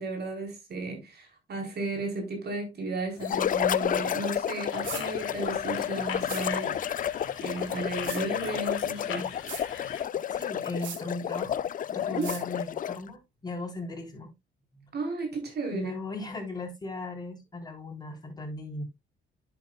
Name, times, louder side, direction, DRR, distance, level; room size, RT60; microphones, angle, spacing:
voice 1, 0.0-9.3 12.1-12.3 14.9-15.9, right 3 dB, 55° right, 4.3 m, -34 dB
sound 1, 3.2-13.1, left 9 dB, 45° left, 0.4 m, -31 dB
sound 2, 4.7-10.0, left 7 dB, 85° left, 3.1 m, -42 dB
sound 3, 4.8-5.0 6.3-6.4 8.0-8.2 9.5-9.6 10.8-11.0 12.2-12.4, right 7 dB, 75° right, 2.7 m, -38 dB
voice 2, 10.3-14.3 15.7-18.8, left 2 dB, 20° left, 3.7 m, -37 dB
10.5 x 7.6 x 2.3 m
cardioid pair, 90°, 20 cm